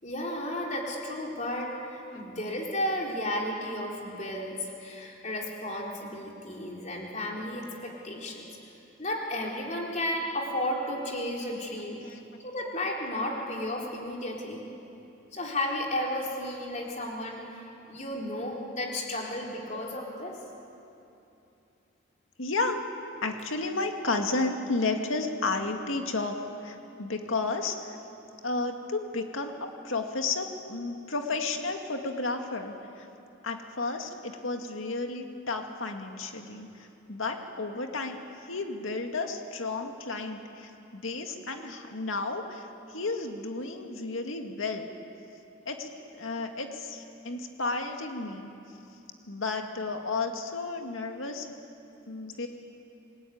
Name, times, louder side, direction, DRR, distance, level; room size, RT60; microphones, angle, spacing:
voice 1, 0.0-8.5 9.0-12.1 12.4-14.6 15.3-20.4, left 1 dB, 35° left, -1 dB, 4.0 m, -33 dB
voice 2, 22.4-22.8 23.2-28.0 28.4-29.5 29.8-33.1 33.4-44.8 45.7-45.9 46.2-48.5 49.3-51.5 52.1-52.5, left 3 dB, 85° left, 4 dB, 2.1 m, -32 dB
27.5 x 19.5 x 9.4 m, 2.8 s
head